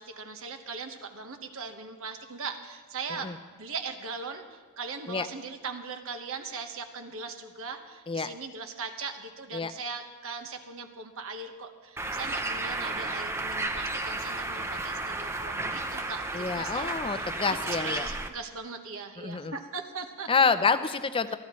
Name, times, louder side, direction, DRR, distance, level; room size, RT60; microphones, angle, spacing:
voice 1, 0.0-17.3 17.7-20.5 21.3-21.4, right 4 dB, 65° right, 5 dB, 1.3 m, -39 dB
Bird, 12.0-18.3, right 2 dB, 10° right, 0.7 m, -33 dB
voice 2, 16.3-18.1 19.2-19.5 20.3-21.4, left 5 dB, 25° left, 12 dB, 0.5 m, -27 dB
22.0 x 13.5 x 3.2 m, 1.4 s
head